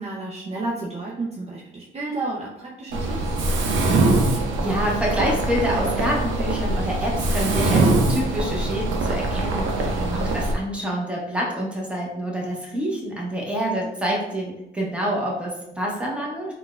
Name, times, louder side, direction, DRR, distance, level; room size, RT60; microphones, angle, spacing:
voice 1, 0.0-3.2 9.8-10.4, right 2 dB, 30° right, -4 dB, 0.5 m, -31 dB
Mechanisms, 2.9-10.5, right 2 dB, 80° right, 0.6 m, -23 dB
voice 2, 4.2-16.5, equal, 5° right, -3 dB, 0.9 m, -27 dB
3.8 x 2.2 x 2.4 m, 0.89 s
cardioid pair, 90°, 20 cm